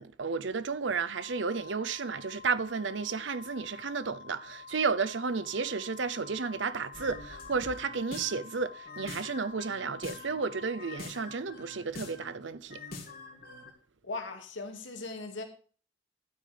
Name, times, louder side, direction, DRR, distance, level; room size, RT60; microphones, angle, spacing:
voice 1, 0.0-12.8, right 5 dB, 70° right, 0.7 m, -32 dB
Organ, 1.0-11.7, left 5 dB, 30° right, 5.4 m, -49 dB
sound 1, 6.9-8.5 8.9-10.4 10.8-12.3 12.7-13.7, left 3 dB, 50° left, 2.8 m, -45 dB
voice 2, 14.0-15.4, left 3 dB, 75° left, 2.3 m, -38 dB
12.0 x 9.3 x 3.4 m
head